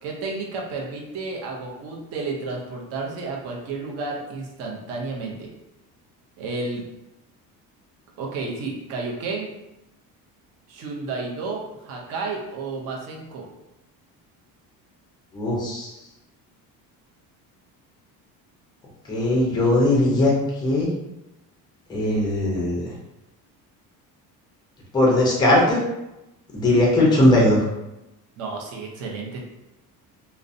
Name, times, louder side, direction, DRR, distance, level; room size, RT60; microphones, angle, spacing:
voice 1, 0.0-5.5 6.4-6.8 8.2-9.5 10.7-13.4 28.4-29.4, right 3 dB, 45° right, -2 dB, 0.5 m, -31 dB
voice 2, 15.3-15.9 19.1-20.3 20.6-20.9 21.9-22.9 24.9-25.8 26.5-27.6, left 1 dB, 10° left, -3 dB, 0.5 m, -19 dB
2.5 x 2.0 x 2.5 m, 0.93 s
cardioid pair, 165°, 37 cm